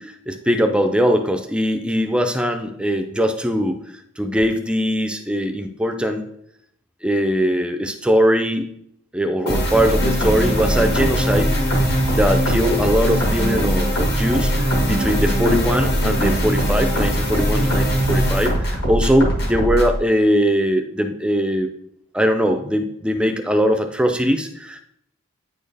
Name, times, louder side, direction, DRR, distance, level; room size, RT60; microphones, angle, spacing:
voice 1, 0.0-3.8 4.2-6.3 7.0-8.7 9.1-11.9 12.1-14.5 14.8-21.7 22.1-24.8, equal, 5° right, 6 dB, 0.5 m, -20 dB
sound 1, 9.5-20.0, equal, 50° left, 1.6 m, -20 dB
9.1 x 4.3 x 3.4 m, 0.73 s
head